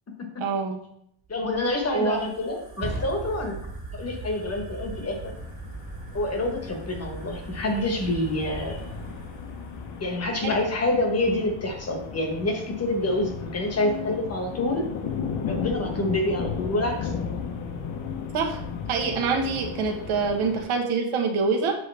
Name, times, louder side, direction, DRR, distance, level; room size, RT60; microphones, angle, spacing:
voice 1, 0.4-0.8 1.9-2.2 10.4-10.5 18.3-18.6 18.9-21.8, right 5 dB, 75° right, 2 dB, 1.4 m, -25 dB
voice 2, 1.3-3.6 4.0-5.3 6.1-8.8 10.0-14.9 15.5-17.1, left 1 dB, 30° left, 3 dB, 1.1 m, -27 dB
Fire, 1.3-10.2, right 2 dB, 45° right, 2.1 m, -39 dB
sound 1, 4.7-20.6, left 6 dB, 65° left, 0.9 m, -35 dB
7.7 x 5.1 x 3.4 m, 0.72 s
cardioid pair, 175°, 50 cm